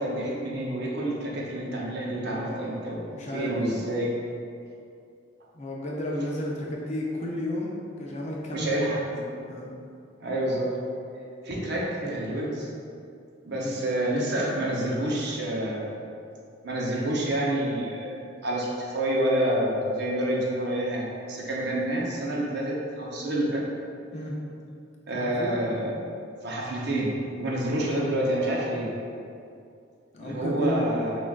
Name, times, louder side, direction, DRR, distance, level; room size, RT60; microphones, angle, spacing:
voice 1, 0.0-3.0 3.3-4.1 8.5-9.0 10.2-10.8 11.4-12.7 13.5-15.9 16.6-23.6 25.1-25.9 26.4-27.1 27.4-28.9 30.2-31.2, right 1 dB, 60° right, -3 dB, 0.6 m, -28 dB
voice 2, 2.2-3.6 5.5-8.7 9.1-9.7 13.6-13.8 24.1-24.3 25.1-25.6 30.1-31.1, left 1 dB, 35° left, -3 dB, 0.5 m, -33 dB
5.9 x 2.4 x 2.3 m, 2.4 s
head